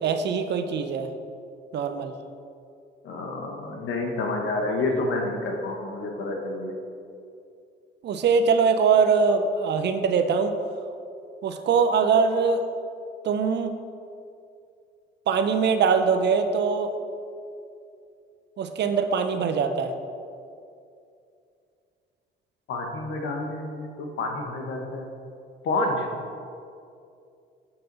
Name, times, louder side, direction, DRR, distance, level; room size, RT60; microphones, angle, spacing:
voice 1, 0.0-1.1 1.7-2.1 8.0-10.5 11.4-12.7 13.2-13.7 15.3-16.9 18.6-19.9, right 5 dB, 60° right, 7 dB, 0.6 m, -22 dB
voice 2, 3.0-6.8 22.7-25.1 25.6-26.1, left 2 dB, 75° left, 2 dB, 1.1 m, -29 dB
6.9 x 5.7 x 3.9 m, 2.5 s
cardioid pair, 90°, 20 cm